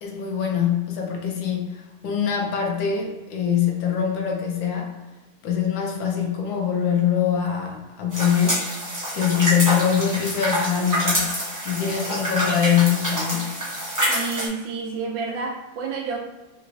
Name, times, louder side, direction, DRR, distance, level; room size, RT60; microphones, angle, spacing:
voice 1, 0.0-4.9 5.4-8.6 9.1-11.4 11.6-13.6, left 8 dB, 75° left, 1 dB, 1.3 m, -23 dB
sound 1, 8.1-14.5, equal, 15° right, 0.6 m, -26 dB
voice 2, 14.1-16.2, right 4 dB, 75° right, 0 dB, 1.3 m, -30 dB
3.9 x 3.0 x 2.6 m, 1.1 s
omnidirectional pair, 2.1 m